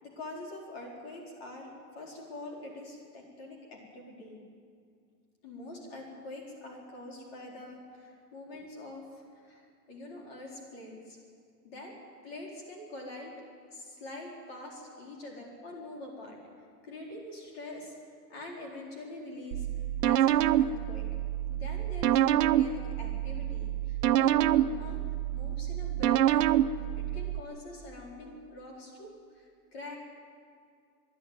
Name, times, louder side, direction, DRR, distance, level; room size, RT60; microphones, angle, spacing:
voice 1, 0.0-4.4 5.4-11.2 11.6-12.0 12.2-13.4 13.7-16.4 16.8-17.9 18.3-19.7 20.0-21.1 21.5-25.0 25.3-26.6 27.0-30.0, left 2 dB, 35° left, -1 dB, 4.4 m, -45 dB
sound 1, 19.5-27.4, right 12 dB, 70° right, 0.8 m, -27 dB
25.5 x 11.5 x 9.4 m, 2.2 s
hypercardioid pair, 175°, 49 cm